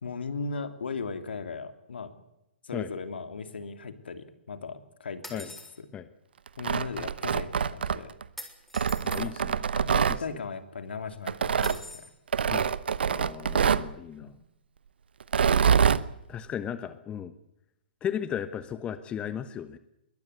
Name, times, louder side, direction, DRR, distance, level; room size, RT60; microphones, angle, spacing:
voice 1, 0.0-2.1 2.6-5.9 6.6-8.1 9.8-12.1 14.2-14.3, left 4 dB, 75° left, 10 dB, 2.9 m, -37 dB
sound 1, 5.2-5.7 8.4-9.3 11.6-12.1, left 1 dB, ahead, 3.9 m, -43 dB
Tearing, 6.5-8.2 8.7-10.2 11.3-11.8 12.3-13.9 15.2-16.0, right 7 dB, 70° right, 1.0 m, -25 dB
voice 2, 9.0-9.6 12.5-12.7 13.1-14.3 16.3-17.3 18.0-19.8, left 9 dB, 20° left, 13 dB, 1.2 m, -35 dB
22.0 x 18.5 x 8.2 m, 0.85 s
figure-of-eight pair, 125°, 6 cm